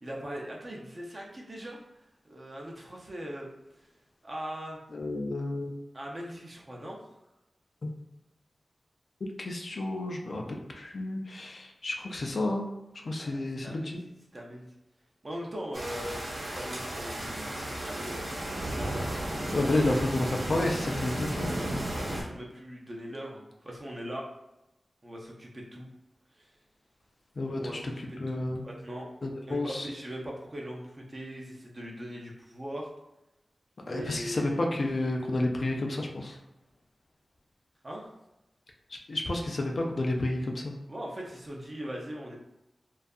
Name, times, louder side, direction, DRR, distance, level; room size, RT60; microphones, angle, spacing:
voice 1, 0.0-1.8 2.2-3.5 3.8-3.9 4.2-4.8 5.9-7.0 13.2-14.7 15.2-16.2 16.5-18.5 19.4-20.0 21.5-24.3 25.0-25.9 26.3-26.5 27.6-29.1 29.5-32.9 33.8-34.6 37.8-38.1 40.9-42.4, equal, 35° right, -1 dB, 0.5 m, -40 dB
voice 2, 4.9-5.7 7.8-7.9 9.4-12.7 13.0-14.0 19.5-21.5 27.4-27.6 28.2-28.6 29.2-29.9 33.9-36.4 39.1-40.7, left 2 dB, 55° left, 1 dB, 0.3 m, -30 dB
sound 1, 15.7-22.2, right 1 dB, 65° right, 0.8 m, -34 dB
2.6 x 2.3 x 2.3 m, 0.91 s
wide cardioid pair, 105°, 0 cm